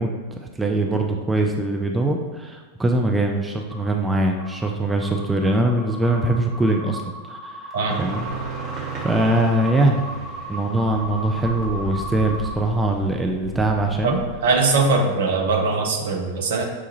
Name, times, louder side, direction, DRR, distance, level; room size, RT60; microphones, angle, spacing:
voice 1, 0.0-7.7 8.0-8.2 9.0-10.0 10.5-14.2, right 1 dB, 10° right, 2 dB, 0.3 m, -22 dB
sound 1, 3.7-3.9 4.4-12.5, right 1 dB, 5° left, 1.1 m, -36 dB
sound 2, 7.9-15.1, right 3 dB, 30° right, 0.9 m, -35 dB
voice 2, 14.0-16.7, right 3 dB, 60° right, 2 dB, 0.6 m, -21 dB
6.0 x 2.3 x 2.9 m, 1.4 s
figure-of-eight pair, 90°, 0 cm